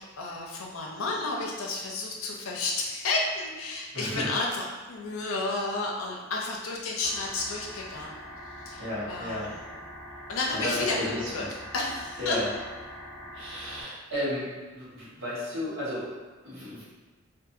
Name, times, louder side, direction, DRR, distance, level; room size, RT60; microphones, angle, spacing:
voice 1, 0.2-8.2 8.7-9.7 10.3-11.5 11.7-12.4, left 3 dB, 85° left, -1 dB, 0.5 m, -31 dB
voice 2, 3.9-4.3 8.8-9.5 10.5-11.3 12.2-12.5 13.3-14.5 14.7-16.0 16.4-16.8, left 1 dB, 70° right, -8 dB, 1.1 m, -33 dB
sound 1, 7.0-13.8, equal, 55° left, 0.7 m, -43 dB
2.7 x 2.5 x 2.4 m, 1.3 s
head